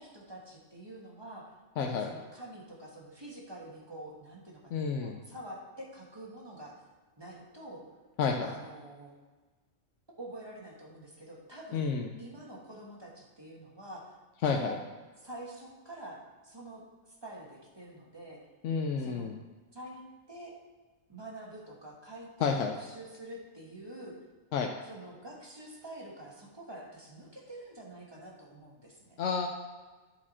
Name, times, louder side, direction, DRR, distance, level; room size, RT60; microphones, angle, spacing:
voice 1, 0.0-1.5 1.8-6.8 7.2-7.8 8.4-9.1 10.2-11.9 12.2-14.1 14.4-14.8 15.2-16.8 17.1-18.4 19.0-19.3 19.7-20.0 20.3-20.5 21.1-24.1 24.8-29.2, right 1 dB, 20° right, -3 dB, 1.5 m, -46 dB
voice 2, 1.8-2.1 4.7-5.2 8.2-8.5 11.7-12.1 14.4-14.8 18.6-19.3 22.4-22.7 24.5-24.7 29.2-29.5, left 5 dB, 75° left, 2 dB, 0.9 m, -30 dB
10.5 x 4.9 x 4.2 m, 1.3 s
omnidirectional pair, 1.3 m